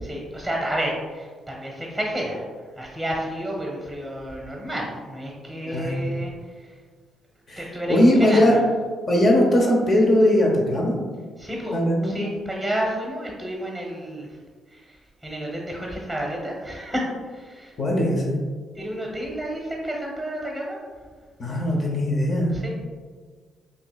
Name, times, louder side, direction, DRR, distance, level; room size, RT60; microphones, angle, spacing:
voice 1, 0.0-2.4 2.7-6.7 7.6-8.6 11.4-11.8 12.0-14.4 14.7-17.7 18.7-20.8 22.5-22.7, equal, 5° right, -1 dB, 0.9 m, -30 dB
voice 2, 5.6-6.0 7.5-7.6 7.9-8.6 9.1-11.0 11.7-12.2 17.8-18.4 21.4-22.5, left 1 dB, 50° left, -1 dB, 0.8 m, -19 dB
5.2 x 2.7 x 2.3 m, 1.6 s
hypercardioid pair, 50°, 0 cm